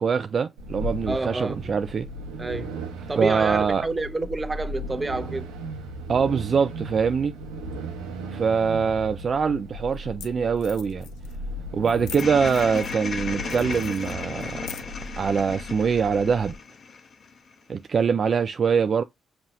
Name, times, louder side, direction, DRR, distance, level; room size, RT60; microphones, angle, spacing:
voice 1, 0.0-2.1 3.2-3.8 6.1-7.4 8.3-11.1 11.7-14.7 15.2-16.5 17.7-19.0, right 6 dB, 50° right, 0.3 m, -23 dB
sound 1, 0.6-16.6, right 1 dB, 85° right, 0.8 m, -37 dB
voice 2, 1.1-1.7 2.4-2.7 3.1-5.5, right 2 dB, 25° right, 0.7 m, -29 dB
sound 2, 9.1-9.2 9.9-10.0 10.2-10.3 10.6-11.4 11.8-13.1 13.4-15.1, left 11 dB, 75° left, 0.3 m, -43 dB
sound 3, 12.2-17.6, left 5 dB, 55° left, 0.8 m, -35 dB
5.4 x 2.8 x 2.5 m
hypercardioid pair, 45°, 0 cm